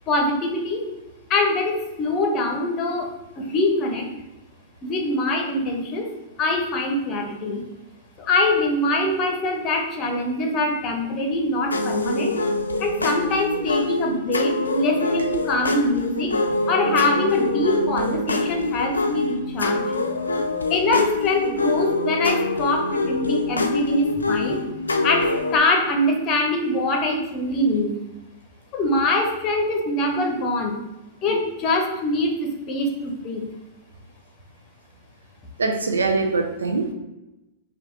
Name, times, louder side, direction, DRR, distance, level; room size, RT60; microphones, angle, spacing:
voice 1, 0.1-0.8 1.3-4.1 4.8-6.1 6.4-7.6 8.2-12.3 12.8-16.4 16.7-19.8 20.7-24.7 25.0-27.9 28.7-30.8 31.2-33.5, left 2 dB, 35° left, 2 dB, 0.8 m, -23 dB
sound 1, 11.7-25.6, left 2 dB, 90° left, 0.4 m, -25 dB
voice 2, 35.6-36.9, right 3 dB, 85° right, 4 dB, 0.5 m, -23 dB
3.4 x 2.5 x 4.5 m, 0.98 s
hypercardioid pair, 105°, 0 cm